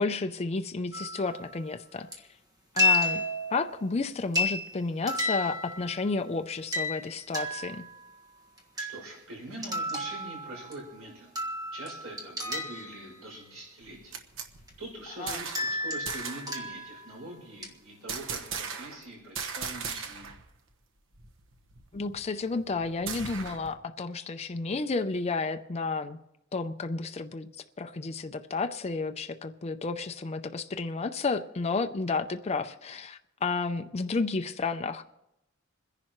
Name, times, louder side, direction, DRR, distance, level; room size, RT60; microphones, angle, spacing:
voice 1, 0.0-2.2 2.7-3.2 3.5-7.8 15.2-15.4 21.9-26.2 26.5-27.5 27.8-35.0, left 3 dB, 30° left, 7 dB, 0.4 m, -31 dB
sound 1, 0.9-1.4 2.1-2.2 2.8-3.8 4.3-4.8 5.1-6.1 6.7-8.2 8.6-9.1 9.6-11.0 11.3-13.1 14.7-14.8 15.5-17.3 17.6-17.7, left 2 dB, 15° right, 1.4 m, -32 dB
voice 2, 8.8-11.3 11.7-14.1 14.8-20.3, right 1 dB, 80° right, -3 dB, 6.3 m, -43 dB
sound 2, 13.8-15.8 16.1-16.6 18.1-19.1 19.4-20.4 20.7-20.8 21.1-23.7, right 6 dB, 60° right, 1.2 m, -38 dB
28.0 x 10.5 x 3.0 m, 0.89 s
head